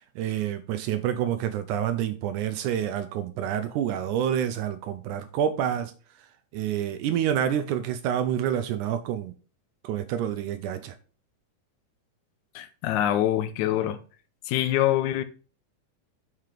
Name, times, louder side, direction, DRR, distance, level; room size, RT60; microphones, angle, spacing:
voice 1, 0.0-5.9 6.5-9.3 9.8-11.0, right 10 dB, 80° right, 1.9 m, -28 dB
voice 2, 12.6-14.0 14.5-15.2, left 12 dB, 75° left, 1.9 m, -25 dB
7.5 x 4.7 x 4.9 m
omnidirectional pair, 3.9 m